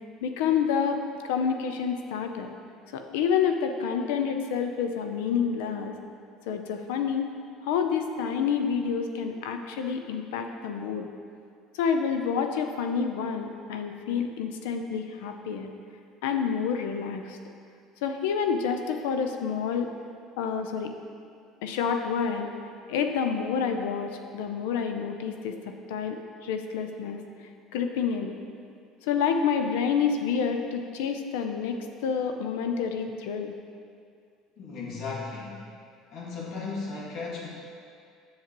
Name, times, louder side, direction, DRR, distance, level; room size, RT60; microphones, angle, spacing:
voice 1, 0.2-2.5 2.9-5.9 6.5-7.3 7.6-11.1 11.7-15.7 16.2-17.4 18.0-19.9 20.4-20.9 21.6-22.5 22.9-25.5 25.9-27.2 27.7-28.3 29.0-33.5, left 6 dB, 85° left, 6 dB, 0.6 m, -28 dB
voice 2, 34.6-35.7 36.1-37.5, left 4 dB, 60° left, -4 dB, 1.8 m, -35 dB
7.4 x 7.3 x 3.0 m, 2.3 s
supercardioid pair, 90°, 0 cm